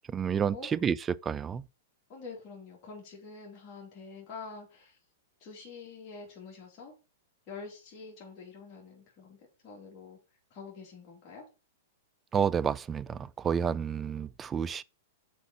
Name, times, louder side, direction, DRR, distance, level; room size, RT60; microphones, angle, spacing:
voice 1, 0.1-1.7 12.3-14.8, right 7 dB, 20° right, 0.3 m, -30 dB
voice 2, 2.1-5.0 5.4-6.9 7.5-9.4 9.6-10.2 10.5-11.5, left 4 dB, 40° left, 2.9 m, -46 dB
6.0 x 4.2 x 5.6 m
hypercardioid pair, 125°, 0 cm